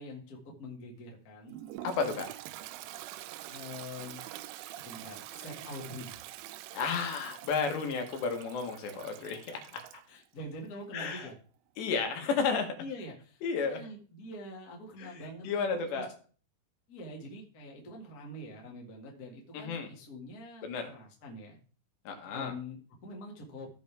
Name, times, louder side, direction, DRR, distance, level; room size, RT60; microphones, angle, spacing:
voice 1, 0.0-1.6 3.5-4.2 4.7-6.1 8.9-9.0 10.1-11.4 12.2-12.3 12.8-16.0 16.9-21.6 22.2-23.7, left 1 dB, 35° left, -1 dB, 1.5 m, -45 dB
Toilet flush, 1.5-10.1, right 14 dB, 90° right, 2.8 m, -46 dB
voice 2, 1.8-2.3 6.7-10.0 10.9-11.3 11.8-12.7 13.4-13.8 15.0-16.1 19.5-19.9 20.6-20.9 22.1-22.5, left 5 dB, 80° left, 4 dB, 3.6 m, -32 dB
16.0 x 5.3 x 3.5 m, 0.42 s
omnidirectional pair, 4.9 m